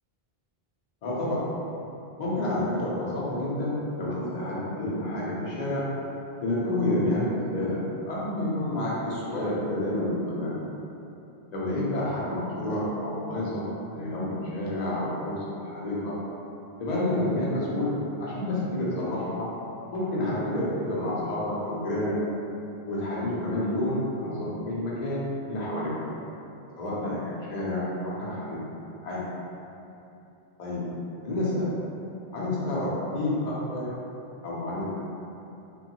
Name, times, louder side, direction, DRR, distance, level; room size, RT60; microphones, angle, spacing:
voice 1, 1.0-1.5 2.2-5.9 6.4-10.6 11.5-13.7 13.9-16.2 16.8-17.9 18.2-19.5 19.9-22.2 22.9-25.9 26.8-28.6 29.0-29.2 30.6-30.8 31.2-31.7 32.3-33.9 34.4-35.0, left 1 dB, 50° left, -7 dB, 0.7 m, -29 dB
3.0 x 2.2 x 2.9 m, 2.8 s
omnidirectional pair, 1.0 m